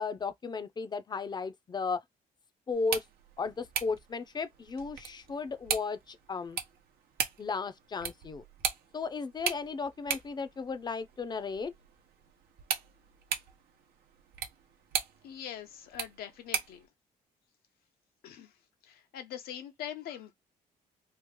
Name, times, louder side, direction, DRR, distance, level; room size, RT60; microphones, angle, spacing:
voice 1, 0.0-2.0 2.7-3.0 3.4-6.6 7.4-8.4 8.9-11.7, left 4 dB, 30° left, 0.5 m, -35 dB
sound 1, 2.7-16.9, right 8 dB, 85° right, 0.8 m, -39 dB
voice 2, 15.2-16.9 18.2-18.5 18.8-20.3, left 10 dB, 90° left, 0.8 m, -43 dB
3.0 x 2.4 x 3.6 m
cardioid pair, 110°, 15 cm